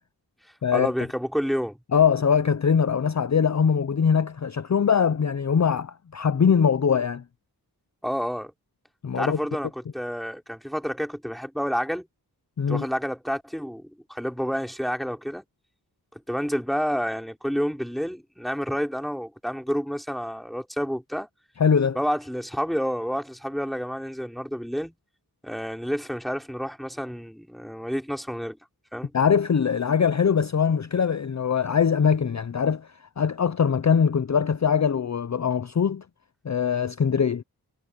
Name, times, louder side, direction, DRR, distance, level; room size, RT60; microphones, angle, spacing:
voice 1, 0.7-1.8 8.0-8.5 9.1-12.0 12.7-15.4 16.1-21.3 22.0-24.9 25.4-28.6 28.9-29.1, equal, ahead, 3.6 m, -29 dB
voice 2, 1.9-7.2 9.0-9.4 12.6-12.9 21.6-22.0 29.1-32.9 33.2-36.0 36.4-37.4, left 7 dB, 45° left, 0.6 m, -22 dB
wide cardioid pair, 55°, 40 cm